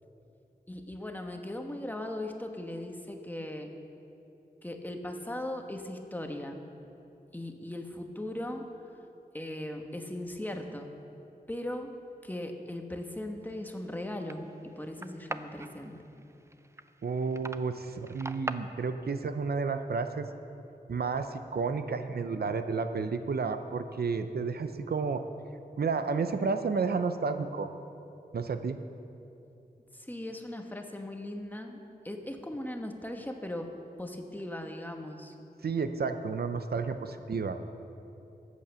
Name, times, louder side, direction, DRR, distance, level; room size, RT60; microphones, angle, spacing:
voice 1, 0.7-3.7 4.6-6.6 7.3-8.6 9.3-10.9 11.5-12.0 12.2-16.0 29.9-31.8 32.0-33.7 34.0-35.3, left 1 dB, 10° left, 3 dB, 1.2 m, -38 dB
sound 1, 13.5-18.6, right 2 dB, 15° right, 0.5 m, -43 dB
voice 2, 17.0-20.3 20.9-25.2 25.8-27.7 28.3-28.8 35.6-37.6, right 4 dB, 75° right, 9 dB, 0.6 m, -31 dB
14.0 x 8.4 x 6.9 m, 2.8 s
wide cardioid pair, 85°, 16 cm